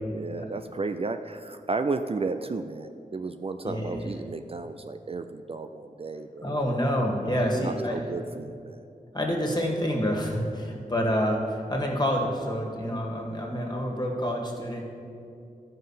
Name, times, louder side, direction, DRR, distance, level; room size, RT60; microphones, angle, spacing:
voice 1, 0.1-6.6 7.5-8.9, right 3 dB, 40° right, 8 dB, 0.4 m, -33 dB
voice 2, 3.6-4.0 6.4-8.0 9.1-14.8, equal, 25° left, 0 dB, 1.9 m, -28 dB
13.0 x 5.5 x 5.7 m, 2.5 s
wide cardioid pair, 60°, 15 cm